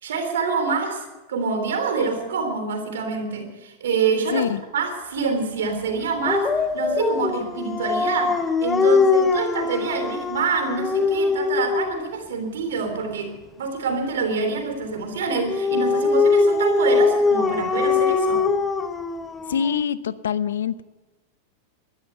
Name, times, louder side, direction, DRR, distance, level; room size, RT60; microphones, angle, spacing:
voice 1, 0.0-4.5 4.7-18.5, right 5 dB, 85° right, 5 dB, 3.4 m, -26 dB
Dog, 6.2-12.1 15.2-19.8, left 4 dB, 15° left, 0.9 m, -22 dB
voice 2, 19.5-20.8, left 8 dB, 90° left, 16 dB, 0.7 m, -24 dB
13.0 x 11.5 x 8.0 m, 1.2 s
hypercardioid pair, 125°, 0 cm